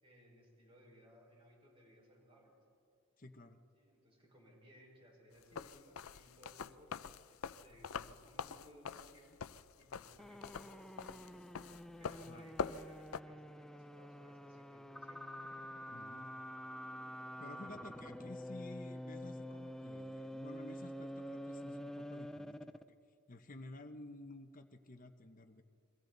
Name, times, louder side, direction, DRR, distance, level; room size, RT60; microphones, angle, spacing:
voice 1, 0.0-2.5 3.7-6.9 7.3-9.4 9.8-11.5 12.0-15.2 17.4-18.0, equal, 25° right, -2 dB, 5.0 m, -62 dB
voice 2, 3.2-3.6 12.3-12.5 15.9-16.3 17.4-22.7 23.3-25.6, left 2 dB, 40° left, 6 dB, 1.0 m, -52 dB
sound 1, 5.4-13.2, left 6 dB, 90° left, 0.5 m, -44 dB
sound 2, 10.2-22.9, equal, 5° left, 0.5 m, -47 dB
29.5 x 22.5 x 4.0 m, 2.4 s
head